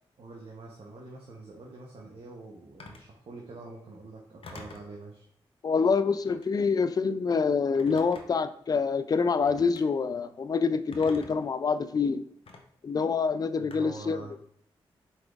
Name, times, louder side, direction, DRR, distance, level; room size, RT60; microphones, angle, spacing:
voice 1, 0.2-5.3 13.6-14.3, right 3 dB, 65° right, -2 dB, 0.9 m, -45 dB
Telephone, 2.8-3.1 4.4-4.9 6.2-6.6 7.7-8.5 9.5-9.8 10.9-11.5 12.5-12.6 13.7-14.1, left 3 dB, 60° left, 0.7 m, -46 dB
voice 2, 5.6-12.2 12.8-14.3, left 5 dB, 35° left, 12 dB, 0.3 m, -26 dB
4.5 x 4.1 x 2.4 m, 0.66 s
supercardioid pair, 45°, 11 cm